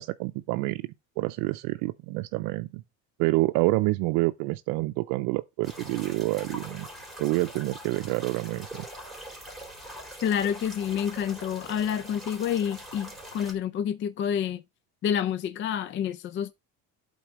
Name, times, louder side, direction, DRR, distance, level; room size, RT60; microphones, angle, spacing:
voice 1, 0.0-2.8 3.2-6.9 7.2-8.8, right 21 dB, 85° right, 0.5 m, -28 dB
sound 1, 5.6-13.5, equal, ahead, 3.3 m, -43 dB
voice 2, 10.2-14.6 15.0-16.5, left 9 dB, 40° left, 0.5 m, -28 dB
8.5 x 3.8 x 6.1 m
cardioid pair, 130°, 32 cm